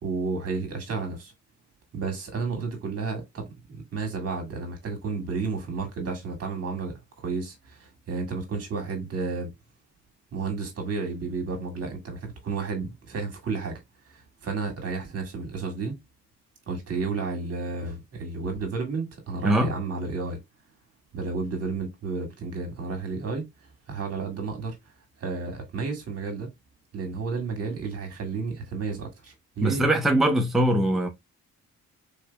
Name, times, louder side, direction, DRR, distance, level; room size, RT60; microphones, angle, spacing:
voice 1, 0.0-1.3 1.9-9.5 10.3-16.0 16.7-20.4 21.1-24.8 25.2-26.5 26.9-29.8, right 4 dB, 55° right, 1.7 m, -32 dB
voice 2, 29.6-31.1, right 1 dB, ahead, 0.7 m, -22 dB
3.9 x 3.2 x 2.2 m
cardioid pair, 90°, 30 cm